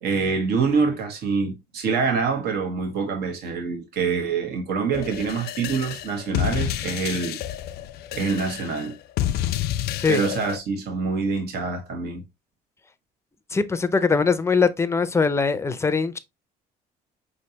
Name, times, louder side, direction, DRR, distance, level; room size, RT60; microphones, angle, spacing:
voice 1, 0.0-7.4 8.1-9.0 10.1-12.2, right 5 dB, 70° right, 1.4 m, -25 dB
sound 1, 4.9-10.6, left 12 dB, 70° left, 0.4 m, -29 dB
voice 2, 13.5-16.2, left 4 dB, 15° left, 0.5 m, -21 dB
5.4 x 3.2 x 2.8 m
cardioid pair, 110°, 17 cm